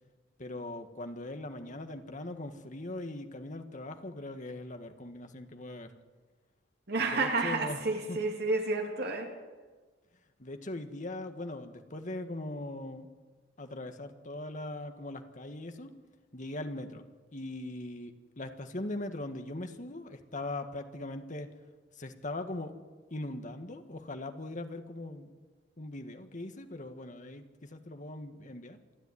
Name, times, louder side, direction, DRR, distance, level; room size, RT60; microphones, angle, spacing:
voice 1, 0.4-5.9 7.0-8.2 10.4-13.1 13.6-15.9 16.3-21.5 21.9-22.7 23.1-25.3 25.8-28.8, left 2 dB, 45° left, 7 dB, 1.7 m, -40 dB
voice 2, 6.9-9.3, right 3 dB, 60° right, 3 dB, 3.1 m, -30 dB
27.0 x 10.5 x 9.8 m, 1.4 s
head